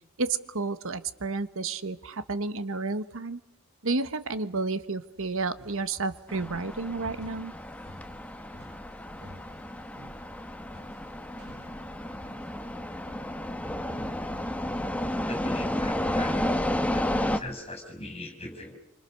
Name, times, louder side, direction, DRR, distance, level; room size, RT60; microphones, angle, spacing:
voice 1, 0.2-3.4 3.8-7.5, right 3 dB, 60° right, 12 dB, 1.3 m, -31 dB
sound 1, 5.1-17.8, equal, 45° right, 6.2 m, -54 dB
sound 2, 6.3-17.4, left 1 dB, 5° left, 1.2 m, -32 dB
voice 2, 15.3-16.5 16.9-18.8, left 2 dB, 25° left, 5 dB, 5.8 m, -40 dB
28.5 x 26.0 x 6.6 m, 0.86 s
head